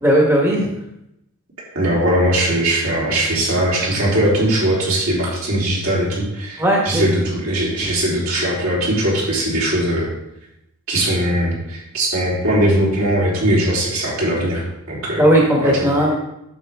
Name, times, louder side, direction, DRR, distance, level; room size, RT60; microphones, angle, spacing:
voice 1, 0.0-0.7 6.6-7.0 15.2-16.1, right 1 dB, 15° right, -3 dB, 1.4 m, -16 dB
voice 2, 1.7-10.1 10.9-15.3 15.6-16.1, right 1 dB, 70° right, -6 dB, 3.4 m, -20 dB
9.1 x 7.2 x 3.5 m, 0.84 s
head